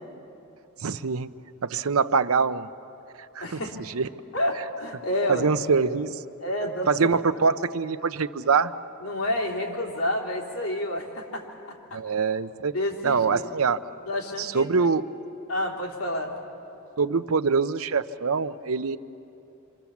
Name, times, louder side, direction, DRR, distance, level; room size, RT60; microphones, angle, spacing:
voice 1, 0.8-1.3 1.6-2.7 3.4-3.6 3.9-4.1 5.3-6.2 6.9-8.7 11.9-12.8 13.0-13.8 14.4-15.2 17.0-19.0, right 5 dB, 75° right, 12 dB, 0.7 m, -24 dB
voice 2, 3.4-3.7 4.3-5.5 6.4-7.1 9.0-11.5 12.7-13.5 14.1-14.7 15.5-16.3, left 1 dB, 80° left, -1 dB, 3.6 m, -29 dB
27.0 x 25.5 x 7.2 m, 2.8 s
head